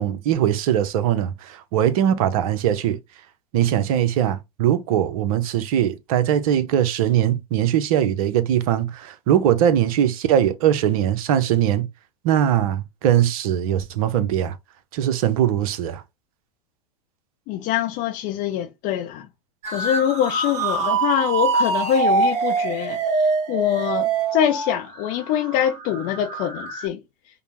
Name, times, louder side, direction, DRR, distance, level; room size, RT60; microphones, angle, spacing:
voice 1, 0.0-3.0 3.5-11.9 12.2-14.6 14.9-16.0, right 10 dB, 55° right, 0.6 m, -21 dB
voice 2, 17.5-19.3 19.7-27.0, left 10 dB, 40° left, 0.5 m, -24 dB
sound 1, 19.6-26.9, right 4 dB, 30° right, 1.2 m, -24 dB
5.1 x 2.0 x 2.9 m
figure-of-eight pair, 90°, 21 cm